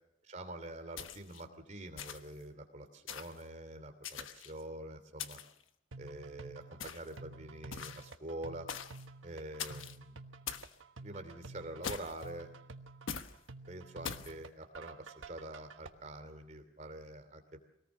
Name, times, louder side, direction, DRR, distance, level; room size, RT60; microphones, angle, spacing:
voice 1, 0.3-5.4 6.0-8.7 9.2-10.2 11.0-12.5 13.7-17.4, right 1 dB, 35° right, 7 dB, 2.8 m, -46 dB
sound 1, 1.0-1.4 2.0-2.4 3.1-3.4 4.0-4.6 5.2-5.6 6.8-7.2 7.7-8.1 8.7-9.0 9.6-10.0 10.5-10.7 11.8-12.3 13.1-13.3 14.0-14.3, left 7 dB, 80° left, 1.2 m, -42 dB
sound 2, 5.9-15.9, right 3 dB, 80° right, 1.3 m, -51 dB
24.5 x 18.5 x 6.3 m, 0.82 s
head